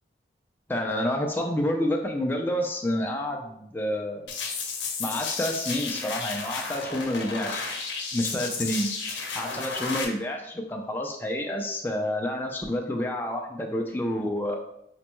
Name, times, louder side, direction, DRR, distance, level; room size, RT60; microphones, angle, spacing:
voice 1, 0.7-4.3 5.0-7.6 8.1-8.9 9.3-14.6, left 1 dB, 10° left, 1 dB, 0.3 m, -29 dB
sound 1, 4.3-10.0, left 4 dB, 85° left, 0.7 m, -33 dB
5.1 x 2.2 x 2.9 m, 0.80 s
head